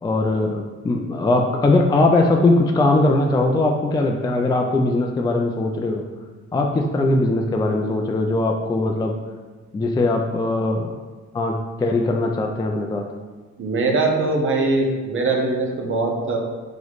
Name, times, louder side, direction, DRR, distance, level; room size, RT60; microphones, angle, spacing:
voice 1, 0.0-6.0 6.5-9.1 9.7-10.9 11.3-13.0, left 2 dB, 15° left, 2 dB, 0.3 m, -20 dB
voice 2, 13.6-16.4, right 3 dB, 45° right, 1 dB, 0.8 m, -21 dB
3.1 x 3.0 x 3.9 m, 1.4 s
cardioid pair, 90°, 30 cm